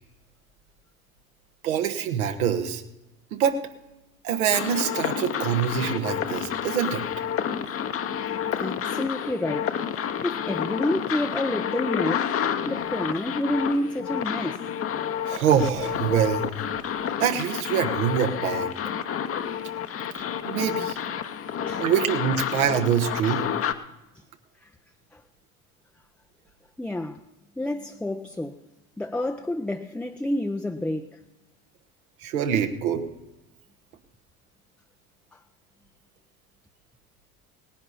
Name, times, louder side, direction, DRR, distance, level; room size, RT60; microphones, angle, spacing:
voice 1, 1.6-2.8 3.3-3.6 4.2-7.1 15.2-16.5 17.2-18.7 20.1-21.0 21.8-23.4 32.2-33.1, right 8 dB, 70° right, 1.4 m, -25 dB
sound 1, 4.5-23.7, left 8 dB, 30° left, 0.9 m, -29 dB
voice 2, 8.6-9.8 10.2-12.3 12.7-14.7 21.7-21.8 24.6-24.7 25.1-25.2 26.8-27.2 27.6-28.6 29.0-31.2 35.3-35.4, left 1 dB, 5° left, 0.6 m, -29 dB
18.5 x 10.5 x 4.2 m
figure-of-eight pair, 70°, 44 cm